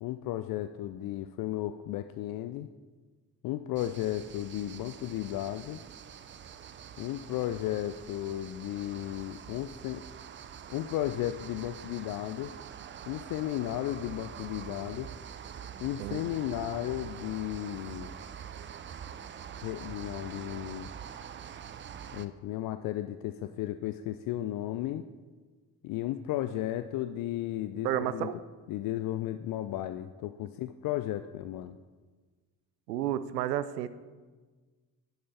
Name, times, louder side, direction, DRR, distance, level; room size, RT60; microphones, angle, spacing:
voice 1, 0.0-2.7 3.4-5.8 7.0-10.0 10.7-12.5 13.1-15.1 15.8-18.1 19.6-20.9 22.1-25.0 25.8-28.3 28.7-31.8, left 13 dB, 45° left, 10 dB, 0.5 m, -34 dB
sound 1, 3.8-22.3, right 8 dB, 25° right, 0.5 m, -45 dB
voice 2, 27.8-28.4 32.9-33.9, right 12 dB, 80° right, 14 dB, 0.6 m, -31 dB
11.0 x 8.1 x 4.2 m, 1.4 s
figure-of-eight pair, 45°, 49 cm